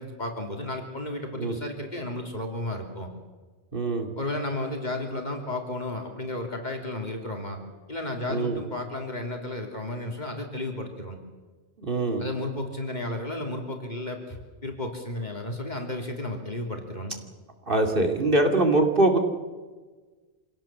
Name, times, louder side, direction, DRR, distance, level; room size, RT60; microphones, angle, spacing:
voice 1, 0.0-3.1 4.2-7.6 7.9-11.2 12.2-17.2, left 2 dB, 40° left, 3 dB, 3.1 m, -33 dB
voice 2, 3.7-4.1 8.3-8.6 11.8-12.2 17.7-19.2, right 2 dB, 50° right, 4 dB, 2.8 m, -23 dB
26.5 x 17.5 x 7.4 m, 1.3 s
omnidirectional pair, 1.2 m